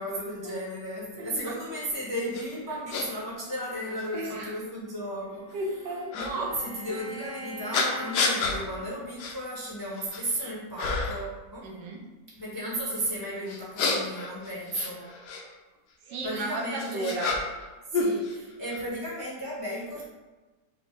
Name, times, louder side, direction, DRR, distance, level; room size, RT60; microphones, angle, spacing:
voice 1, 0.0-5.6 6.1-11.7 12.4-15.0 16.2-17.1 17.9-20.1, right 1 dB, 15° left, -6 dB, 0.6 m, -34 dB
voice 2, 1.2-1.6 4.1-4.5 5.5-6.5 6.9-7.0 11.6-12.1 15.1-15.2 16.0-17.3, right 1 dB, 75° right, 0 dB, 1.4 m, -35 dB
sound 1, 2.3-2.4 2.9-3.1 4.0-4.1 6.1-6.3 7.7-8.6 9.2-9.4 9.8-10.3 10.8-11.3 13.5-15.4 16.4-17.7 17.9-18.8, left 4 dB, 75° left, 1.2 m, -29 dB
Bowed string instrument, 4.8-9.3, left 1 dB, 55° right, 1.2 m, -43 dB
5.3 x 2.2 x 4.5 m, 1.2 s
omnidirectional pair, 1.9 m